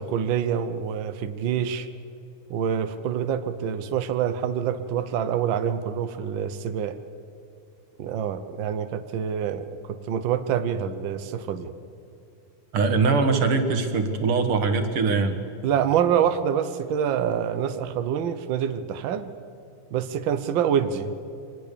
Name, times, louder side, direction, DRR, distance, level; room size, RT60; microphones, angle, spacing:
voice 1, 0.0-1.9 2.5-7.0 8.0-11.7 15.6-19.3 19.9-21.1, right 8 dB, 85° right, 10 dB, 1.0 m, -26 dB
voice 2, 12.7-15.4, right 4 dB, 50° right, 7 dB, 2.3 m, -22 dB
23.5 x 19.0 x 6.8 m, 2.7 s
omnidirectional pair, 3.4 m